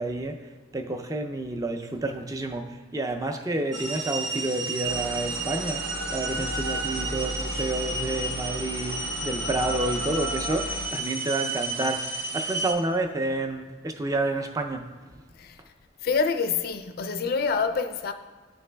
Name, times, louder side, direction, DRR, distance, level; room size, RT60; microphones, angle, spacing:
voice 1, 0.0-12.1 12.3-14.9, right 2 dB, 20° right, 0.4 m, -29 dB
sound 1, 3.7-12.7, right 2 dB, 80° right, 1.0 m, -32 dB
sound 2, 4.8-10.9, right 1 dB, 60° right, 0.7 m, -36 dB
voice 2, 16.0-18.1, left 5 dB, 50° left, 0.3 m, -26 dB
11.0 x 4.0 x 2.2 m
head